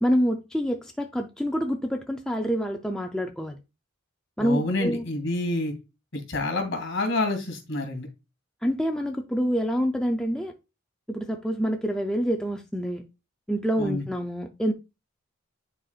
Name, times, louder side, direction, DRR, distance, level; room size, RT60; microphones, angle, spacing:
voice 1, 0.0-3.6 4.4-5.1 8.6-10.5 11.1-13.0 13.5-14.7, equal, 5° left, 2 dB, 0.4 m, -27 dB
voice 2, 4.4-5.7 6.1-8.1 13.8-14.1, left 2 dB, 60° left, 4 dB, 2.2 m, -28 dB
10.0 x 4.3 x 2.4 m, 0.27 s
head